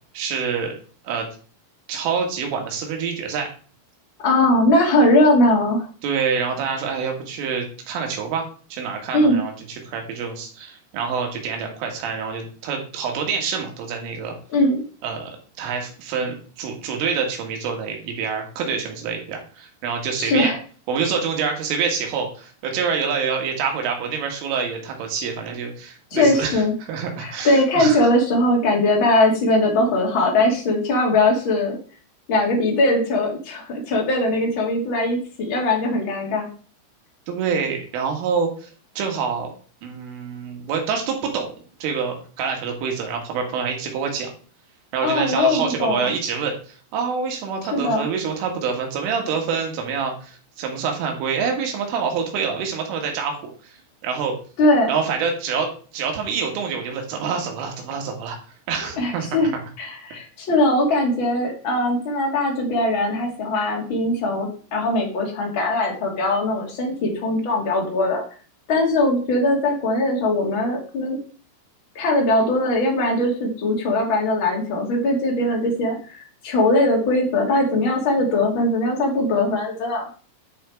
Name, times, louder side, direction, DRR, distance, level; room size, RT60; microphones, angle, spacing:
voice 1, 0.1-0.7 1.0-1.3 1.9-3.5 6.0-14.4 15.0-15.3 15.6-20.5 20.9-28.1 37.3-38.7 39.0-39.5 39.8-44.3 44.9-54.4 54.9-58.4 58.7-59.3, right 6 dB, 80° right, 2 dB, 4.5 m, -26 dB
voice 2, 4.2-5.9 9.1-9.4 14.5-14.8 20.2-20.6 26.1-26.7 27.2-31.8 32.3-36.5 45.0-46.1 47.7-48.0 54.6-54.9 59.0-59.5 59.8-68.2 68.7-71.2 71.9-80.1, left 1 dB, 35° left, 0 dB, 2.2 m, -20 dB
10.5 x 6.3 x 4.7 m, 0.41 s
omnidirectional pair, 5.7 m